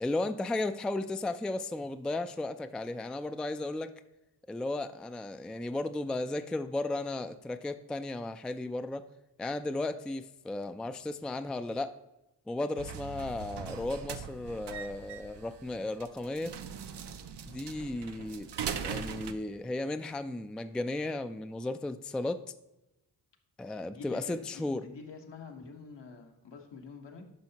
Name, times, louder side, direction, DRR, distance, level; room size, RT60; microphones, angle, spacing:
voice 1, 0.0-3.9 4.5-9.1 9.4-11.9 12.5-16.6 17.4-22.4 23.6-24.8, left 2 dB, ahead, 10 dB, 0.3 m, -35 dB
sound 1, 12.8-19.3, right 7 dB, 70° right, 0.7 m, -40 dB
voice 2, 23.9-27.2, left 5 dB, 75° left, 2 dB, 1.3 m, -47 dB
10.5 x 5.6 x 2.9 m, 0.95 s
cardioid pair, 50°, 43 cm